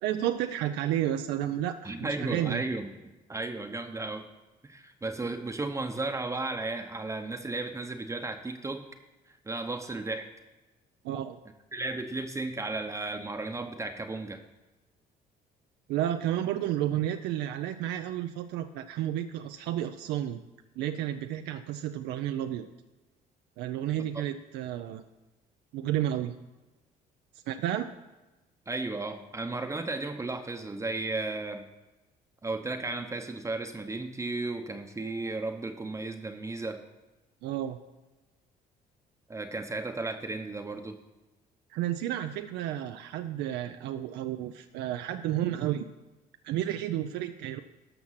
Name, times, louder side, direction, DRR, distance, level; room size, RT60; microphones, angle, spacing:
voice 1, 0.0-2.6 11.0-11.4 15.9-20.4 20.8-22.7 23.6-25.0 25.7-26.3 27.5-27.9 37.4-37.8 41.7-45.9 46.4-47.6, right 12 dB, 85° right, 7 dB, 0.5 m, -31 dB
voice 2, 1.8-4.2 4.6-8.8 9.5-10.3 11.7-14.4 28.7-31.7 32.4-36.8 39.3-41.0, right 2 dB, 15° right, 5 dB, 0.8 m, -34 dB
12.5 x 5.9 x 5.7 m, 1.1 s
cardioid pair, 110°, 17 cm